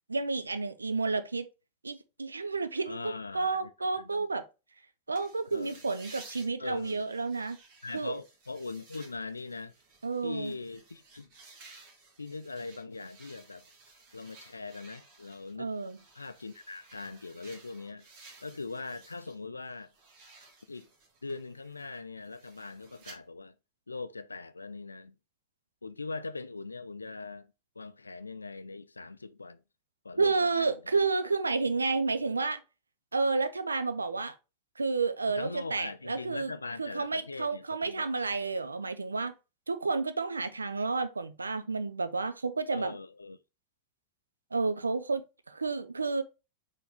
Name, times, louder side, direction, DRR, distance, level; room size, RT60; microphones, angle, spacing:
voice 1, 0.1-1.5 1.8-4.5 5.1-7.6 7.9-8.1 10.0-10.6 15.6-16.0 30.2-32.6 33.1-34.3 34.8-36.5 36.8-39.3 39.7-43.0 44.5-46.2, right 4 dB, 80° right, 0.4 m, -31 dB
voice 2, 2.9-3.7 4.0-4.2 5.5-5.8 6.6-7.0 7.8-9.7 10.2-11.3 12.2-13.7 14.1-15.7 16.1-18.1 18.4-19.9 20.7-20.9 21.2-23.5 23.9-25.1 25.8-29.6 30.0-30.7 35.4-38.1 42.7-43.4, left 3 dB, 80° left, 0.3 m, -41 dB
sound 1, 5.1-19.4 19.7-23.1, right 3 dB, 45° right, 1.6 m, -55 dB
4.6 x 3.1 x 3.6 m
figure-of-eight pair, 90°, 0 cm